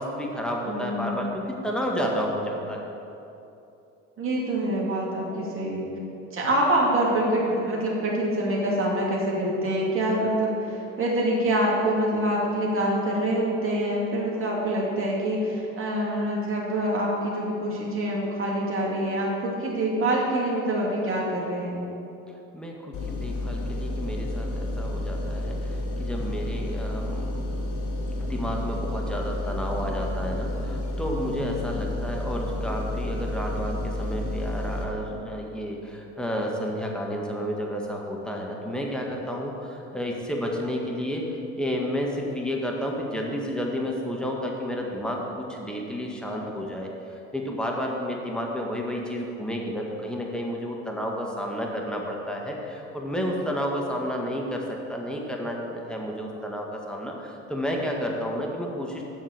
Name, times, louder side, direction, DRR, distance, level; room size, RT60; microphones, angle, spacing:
voice 1, 0.0-2.9 22.5-27.6 28.2-59.0, equal, ahead, -1 dB, 1.8 m, -31 dB
voice 2, 0.7-1.3 4.2-5.9 6.3-21.9, right 1 dB, 35° right, -4 dB, 2.3 m, -25 dB
sound 1, 22.9-34.8, left 1 dB, 60° left, 1.4 m, -30 dB
7.7 x 6.5 x 6.7 m, 2.9 s
hypercardioid pair, 55°, 37 cm